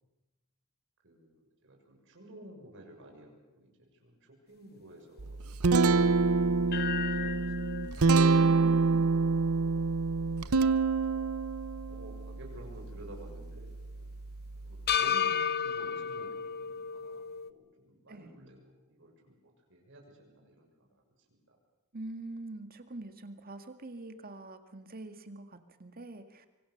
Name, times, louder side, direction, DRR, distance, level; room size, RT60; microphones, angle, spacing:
voice 1, 1.0-7.7 7.9-8.2 10.4-11.3 11.9-13.7 13.9-14.1 14.6-17.2 17.5-19.4 19.7-20.9 21.3-21.6, right 1 dB, 60° right, 1 dB, 6.7 m, -53 dB
Guitar, 5.2-15.0, right 4 dB, 75° right, 0.8 m, -27 dB
sound 1, 6.7-11.0 11.4-11.5 14.9-17.5, left 8 dB, 45° left, 0.9 m, -34 dB
voice 2, 8.4-9.3 18.1-18.4 21.9-26.4, right 2 dB, 45° right, 7 dB, 2.0 m, -45 dB
25.0 x 25.0 x 6.7 m, 1.1 s
head